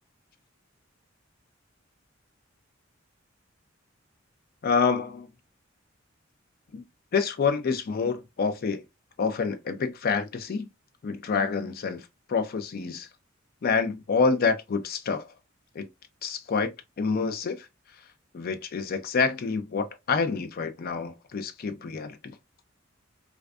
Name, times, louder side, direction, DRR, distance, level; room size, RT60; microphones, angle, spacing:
voice 1, 4.6-5.3 6.7-6.8 7.1-8.8 9.2-10.7 11.0-13.1 13.6-15.3 15.7-15.9 16.2-17.7 18.3-22.4, left 5 dB, 50° left, 0.4 m, -27 dB
2.5 x 2.2 x 2.3 m
head